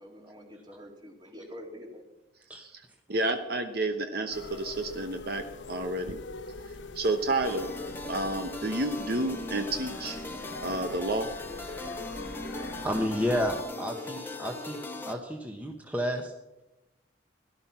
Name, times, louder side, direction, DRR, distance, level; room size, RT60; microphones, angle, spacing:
voice 1, 0.0-2.0, equal, 25° right, 1 dB, 2.9 m, -46 dB
voice 2, 3.1-5.4 5.7-6.2 6.9-7.7 8.1-10.2 10.6-11.3, right 2 dB, 55° right, 7 dB, 1.0 m, -30 dB
sound 1, 4.3-13.6, left 3 dB, 90° left, 1.0 m, -43 dB
sound 2, 7.4-15.1, left 2 dB, 10° left, 1.3 m, -39 dB
voice 3, 12.8-14.8 15.1-16.3, equal, 10° right, 2 dB, 1.2 m, -31 dB
17.5 x 12.0 x 5.8 m, 0.98 s
head